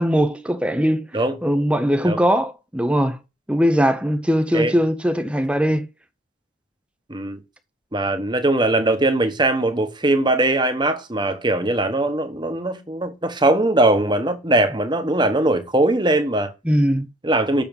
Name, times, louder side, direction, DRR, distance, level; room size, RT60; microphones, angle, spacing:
voice 1, 0.0-1.0 1.4-3.2 3.5-5.9 16.6-17.1, equal, 5° right, 0.7 m, -20 dB
voice 2, 7.1-7.4 7.9-16.5 17.2-17.6, right 2 dB, 20° right, 1.2 m, -20 dB
7.1 x 6.8 x 5.4 m
head